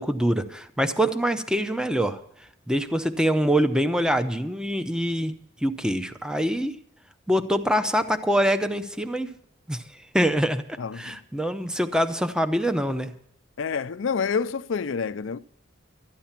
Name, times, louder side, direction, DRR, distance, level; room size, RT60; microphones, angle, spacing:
voice 1, 0.0-2.2 2.7-5.3 5.6-6.7 7.3-9.3 9.7-9.8 10.1-10.6 11.0-13.1, equal, 5° right, 0.6 m, -24 dB
voice 2, 10.8-11.2 13.6-15.4, left 5 dB, 85° left, 0.5 m, -28 dB
13.5 x 10.0 x 5.8 m
head